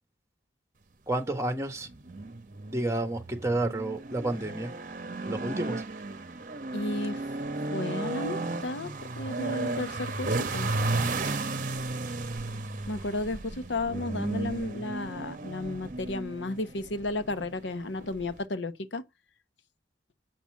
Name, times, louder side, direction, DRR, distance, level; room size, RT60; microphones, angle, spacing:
voice 1, 1.1-1.9 2.7-4.7 5.3-5.8, right 1 dB, 15° right, 1.5 m, -30 dB
sound 1, 1.8-18.5, right 2 dB, 45° right, 1.0 m, -34 dB
voice 2, 6.7-7.2 7.7-10.7 12.9-19.0, left 2 dB, 85° left, 1.0 m, -33 dB
7.8 x 5.8 x 7.3 m
head